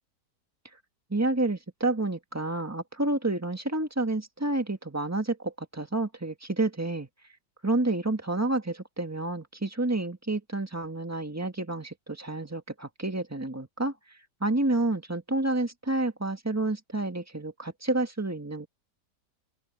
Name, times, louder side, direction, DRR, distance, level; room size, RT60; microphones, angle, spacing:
voice 1, 1.1-7.1 7.6-13.9 14.4-18.7, right 2 dB, 10° right, 1.6 m, -29 dB
open air
omnidirectional pair, 1.8 m